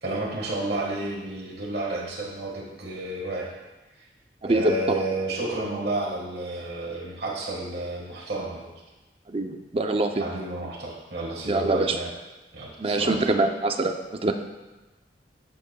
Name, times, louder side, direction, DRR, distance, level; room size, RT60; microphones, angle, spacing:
voice 1, 0.0-3.5 4.5-8.7 10.2-12.1 12.5-13.4, right 2 dB, 65° right, -2 dB, 1.5 m, -31 dB
voice 2, 4.4-5.0 9.3-10.2 11.5-12.0 12.8-13.9 14.2-14.3, right 2 dB, 35° right, 6 dB, 0.6 m, -24 dB
11.5 x 8.1 x 2.3 m, 1.1 s
head